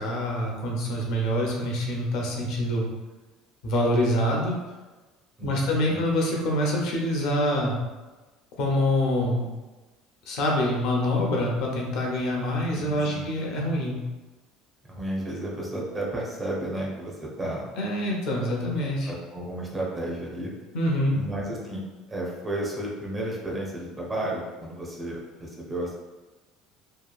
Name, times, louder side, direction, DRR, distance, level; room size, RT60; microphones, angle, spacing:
voice 1, 0.0-2.9 3.6-4.5 5.4-7.8 8.6-9.4 10.3-14.0 17.8-19.1 20.7-21.2, left 1 dB, 65° left, -1 dB, 0.6 m, -25 dB
voice 2, 5.4-6.0 12.7-13.3 14.8-17.6 19.1-20.5 21.1-21.8 22.1-25.9, right 1 dB, 20° right, -3 dB, 0.5 m, -32 dB
2.8 x 2.3 x 2.3 m, 1.2 s
cardioid pair, 150°, 0 cm